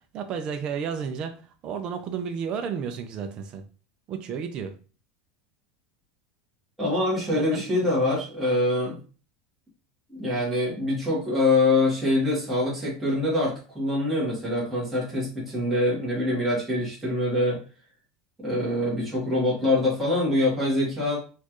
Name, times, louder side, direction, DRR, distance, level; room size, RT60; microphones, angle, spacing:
voice 1, 0.1-3.6 4.1-4.8 7.3-7.6, right 6 dB, 35° right, 6 dB, 0.5 m, -32 dB
voice 2, 6.8-9.0 10.1-17.6 18.4-21.2, left 2 dB, 5° right, -7 dB, 1.4 m, -24 dB
4.3 x 2.5 x 2.9 m, 0.35 s
supercardioid pair, 150°, 3 cm